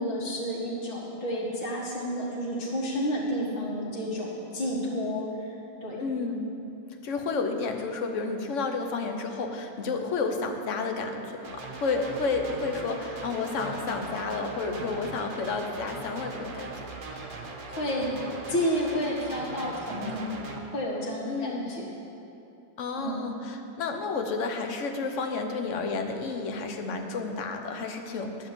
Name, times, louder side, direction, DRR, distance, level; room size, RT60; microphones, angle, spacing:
voice 1, 0.0-5.5 5.8-6.0 17.1-17.3 17.7-18.1 18.5-22.0 23.0-23.3, equal, 70° left, -5 dB, 2.6 m, -31 dB
voice 2, 6.0-6.5 7.0-16.7 21.2-21.7 22.8-28.5, left 4 dB, 55° left, 4 dB, 0.9 m, -31 dB
sound 1, 11.4-20.6, right 3 dB, 60° right, 0.5 m, -40 dB
10.5 x 6.0 x 8.1 m, 2.8 s
omnidirectional pair, 2.2 m